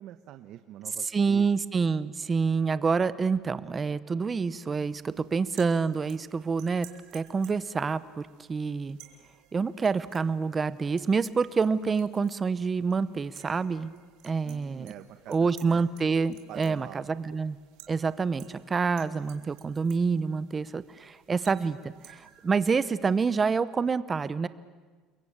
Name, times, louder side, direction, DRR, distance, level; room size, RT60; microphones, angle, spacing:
voice 1, 0.0-1.5 14.4-15.9 16.5-17.3 22.2-22.3, right 12 dB, 55° right, 9 dB, 1.1 m, -45 dB
voice 2, 1.0-6.9 7.1-9.0 9.5-13.9 14.2-14.9 15.3-17.6 17.9-24.5, right 5 dB, 20° right, 16 dB, 0.8 m, -27 dB
sound 1, 4.8-23.2, right 13 dB, 70° right, 3.2 m, -56 dB
29.5 x 22.5 x 8.8 m, 1.4 s
cardioid pair, 150°, 0 cm